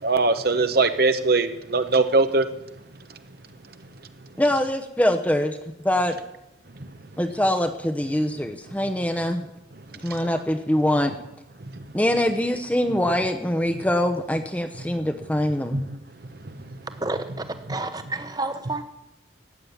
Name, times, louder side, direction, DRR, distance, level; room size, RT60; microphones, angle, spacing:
voice 1, 0.0-2.5 6.8-6.9 10.0-10.2 11.6-11.8 15.7-16.0 16.4-16.8, right 3 dB, 55° right, 9 dB, 1.0 m, -22 dB
voice 2, 4.4-5.5 5.8-6.2 7.2-9.4 10.0-11.1 11.9-15.8, left 1 dB, 10° left, 6 dB, 0.9 m, -23 dB
voice 3, 17.0-18.8, right 2 dB, 20° right, 9 dB, 1.1 m, -30 dB
15.0 x 8.8 x 9.5 m, 0.89 s
head